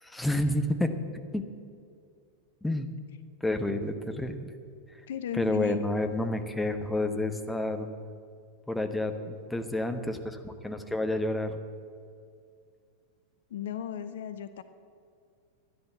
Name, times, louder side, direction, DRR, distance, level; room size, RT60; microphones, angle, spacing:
voice 1, 0.0-0.9 1.3-1.4 2.6-2.9 3.4-4.4 5.3-7.9 8.7-11.6, left 1 dB, 5° left, 6 dB, 1.1 m, -29 dB
voice 2, 5.1-5.8 13.5-14.6, left 9 dB, 60° left, 12 dB, 0.6 m, -35 dB
12.5 x 10.5 x 7.8 m, 2.3 s
figure-of-eight pair, 90°, 0 cm